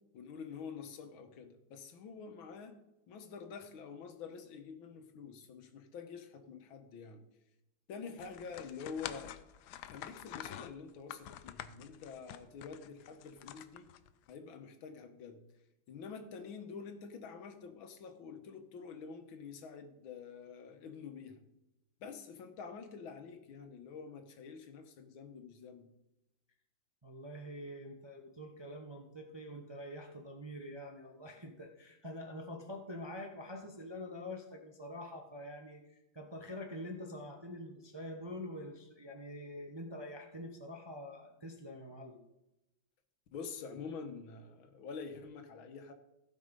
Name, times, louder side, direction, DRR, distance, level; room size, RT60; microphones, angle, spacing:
voice 1, 0.1-2.8 3.1-7.2 7.9-9.4 9.9-13.9 14.3-15.4 15.9-21.4 22.0-25.9 43.3-45.9, left 5 dB, 90° left, 7 dB, 1.8 m, -47 dB
sound 1, 8.2-14.3, left 11 dB, 70° left, 1.0 m, -47 dB
voice 2, 27.0-42.2, left 1 dB, 25° right, 2 dB, 0.6 m, -46 dB
15.5 x 5.4 x 5.3 m, 0.92 s
omnidirectional pair, 2.1 m